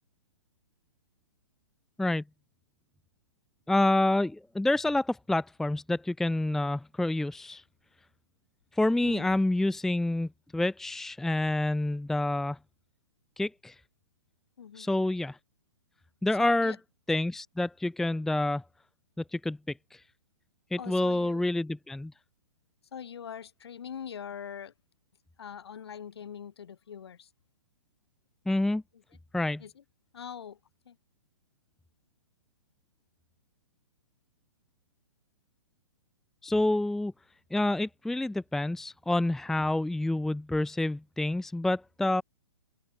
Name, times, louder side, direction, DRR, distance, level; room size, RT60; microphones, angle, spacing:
voice 1, 3.7-7.6 8.7-12.6 13.4-13.7 14.8-15.4 16.2-16.8 17.1-18.6 19.3-19.6 19.9-20.0 20.7-22.1 28.5-28.8 29.3-29.6 36.4-37.1 37.5-42.2, left 2 dB, ahead, 0.9 m, -28 dB
voice 2, 9.0-9.4 14.6-14.9 16.4-16.8 20.8-21.4 22.9-24.7 25.4-27.3 29.6-29.8 30.1-30.6 30.9-31.0, left 8 dB, 55° left, 4.4 m, -42 dB
figure-of-eight pair, 120°, 16 cm